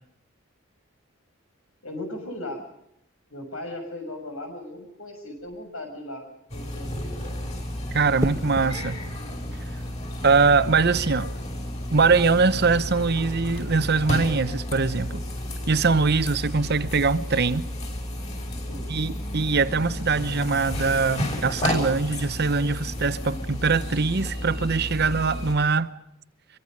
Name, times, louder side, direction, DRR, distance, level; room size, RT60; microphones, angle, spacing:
voice 1, 1.8-2.6 3.3-7.1 18.7-18.9, left 1 dB, 85° left, 6.5 m, -37 dB
sound 1, 5.4-5.7 8.2-8.7 10.7-11.0, right 1 dB, 15° right, 1.1 m, -31 dB
sound 2, 6.5-25.5, left 1 dB, 35° left, 6.0 m, -32 dB
voice 2, 7.9-9.0 10.2-11.3 11.9-15.2 15.7-17.7 18.9-26.0, right 4 dB, 50° right, 1.0 m, -22 dB
24.5 x 23.5 x 5.3 m
head